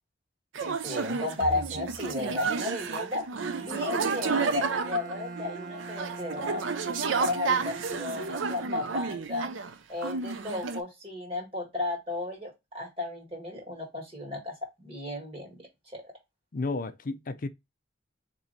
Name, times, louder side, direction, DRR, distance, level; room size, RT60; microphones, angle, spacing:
sound 1, 0.5-9.7 10.0-10.8, right 5 dB, 85° right, 0.6 m, -31 dB
voice 1, 0.6-3.3 3.6-6.6 7.2-9.5 9.9-15.7 15.9-16.1, left 2 dB, 30° right, 1.9 m, -34 dB
Bowed string instrument, 3.3-9.5, right 3 dB, 50° right, 0.8 m, -43 dB
voice 2, 16.5-17.5, left 3 dB, 45° left, 0.5 m, -32 dB
4.3 x 3.0 x 4.0 m
head